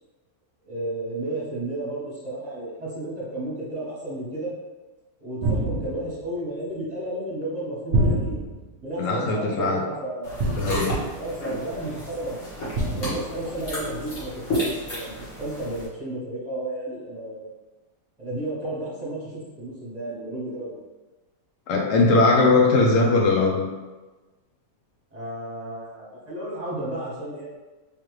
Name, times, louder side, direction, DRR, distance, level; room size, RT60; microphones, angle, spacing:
voice 1, 0.6-4.5 5.2-8.4 8.8-10.4 11.2-12.4 12.9-17.5 18.2-20.8 25.1-27.5, right 1 dB, 25° right, -7 dB, 1.0 m, -32 dB
sound 1, 5.4-6.2 7.9-8.7 10.4-11.1 12.7-13.4, right 2 dB, 65° right, 0.6 m, -26 dB
voice 2, 9.0-9.8 10.6-10.9 21.7-23.7, left 3 dB, 65° left, 0 dB, 0.8 m, -20 dB
sound 2, 10.2-15.9, equal, 50° left, 1.7 m, -32 dB
3.5 x 3.3 x 3.1 m, 1.2 s
omnidirectional pair, 1.9 m